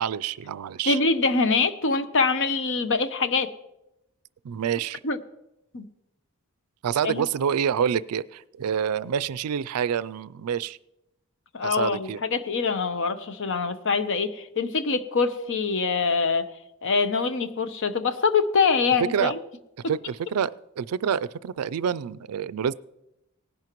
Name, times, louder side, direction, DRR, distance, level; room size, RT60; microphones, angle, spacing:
voice 1, 0.0-1.0 4.4-5.0 6.8-10.8 11.6-12.2 19.1-19.3 19.9-22.7, right 8 dB, 85° right, 18 dB, 0.4 m, -27 dB
voice 2, 0.9-3.5 5.0-5.2 5.7-5.9 7.0-7.2 11.5-16.5 16.8-19.4, left 4 dB, 60° left, 10 dB, 0.8 m, -24 dB
18.5 x 11.0 x 3.0 m, 0.86 s
head